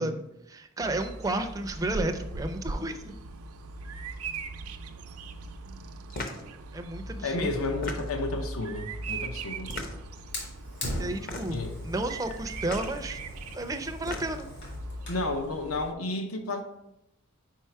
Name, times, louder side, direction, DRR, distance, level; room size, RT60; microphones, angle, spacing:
voice 1, 0.0-3.1 6.7-7.5 11.0-13.2 13.5-14.5, right 2 dB, 15° right, 0.4 m, -32 dB
Bird vocalization bird call bird song, 0.8-15.9, right 2 dB, 90° right, 0.5 m, -39 dB
sound 1, 6.1-6.5 7.6-8.3 9.6-10.2 11.2-11.7 12.6-12.9 13.8-14.5, left 2 dB, 40° left, 0.7 m, -37 dB
voice 2, 7.2-9.8 11.5-11.8 15.1-16.6, left 2 dB, 75° left, 0.7 m, -32 dB
Fire, 10.3-15.3, left 1 dB, 55° left, 2.1 m, -40 dB
4.8 x 4.6 x 4.5 m
head